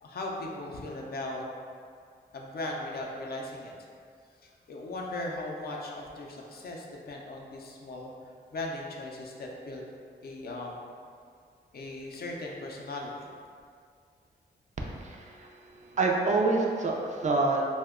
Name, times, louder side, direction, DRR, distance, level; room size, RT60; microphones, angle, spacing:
voice 1, 0.0-1.4 2.3-3.7 4.4-8.1 8.5-9.8 10.2-10.8 11.7-13.3, left 2 dB, 55° left, -1 dB, 0.4 m, -38 dB
voice 2, 14.8-17.7, right 3 dB, 40° right, 0 dB, 0.4 m, -27 dB
2.8 x 2.1 x 3.5 m, 2.2 s
wide cardioid pair, 105°, 19 cm